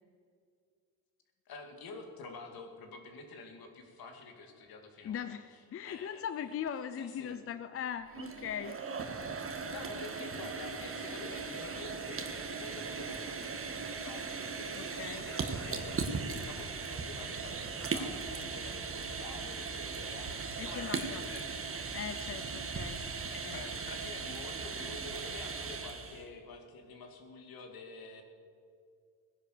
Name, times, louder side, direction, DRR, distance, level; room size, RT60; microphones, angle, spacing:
voice 1, 1.5-5.3 5.8-6.3 6.9-7.4 9.3-21.8 23.3-28.2, left 3 dB, 65° left, 4 dB, 2.5 m, -48 dB
voice 2, 5.0-8.8 14.7-15.3 20.6-21.2 21.9-23.6, left 8 dB, 35° left, 11 dB, 0.6 m, -40 dB
sound 1, 8.0-26.2, right 5 dB, 35° right, 1.6 m, -38 dB
17.5 x 10.5 x 6.8 m, 2.3 s
cardioid pair, 100°, 38 cm